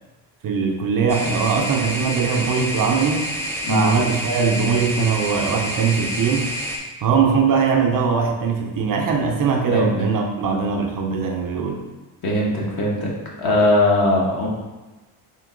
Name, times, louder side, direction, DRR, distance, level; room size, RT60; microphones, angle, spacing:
voice 1, 0.4-3.3 3.7-6.5 7.0-11.8, right 5 dB, 45° right, 2 dB, 0.6 m, -21 dB
sound 1, 1.1-6.8, equal, 5° left, 0.8 m, -28 dB
voice 2, 9.7-10.1 12.2-13.1 13.4-14.5, left 1 dB, 45° left, -3 dB, 1.3 m, -20 dB
3.7 x 2.8 x 3.8 m, 1.1 s
cardioid pair, 85°, 49 cm